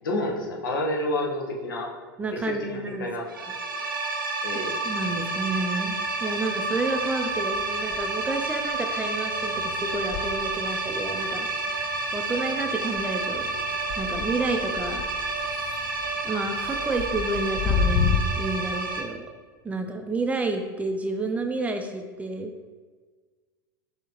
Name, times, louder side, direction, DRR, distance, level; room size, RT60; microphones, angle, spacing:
voice 1, 0.0-1.9 2.3-3.3 4.4-4.7, left 1 dB, 75° left, -1 dB, 1.0 m, -29 dB
voice 2, 2.2-3.1 4.8-13.5 14.0-15.1 16.2-19.3 19.6-22.5, right 2 dB, 15° right, 5 dB, 0.4 m, -30 dB
sound 1, 3.3-19.0, right 3 dB, 90° right, 0.8 m, -30 dB
sound 2, 4.9-6.2 6.5-18.2, left 6 dB, 45° left, 0.5 m, -33 dB
6.1 x 2.8 x 2.9 m, 1.5 s
hypercardioid pair, 90°, 11 cm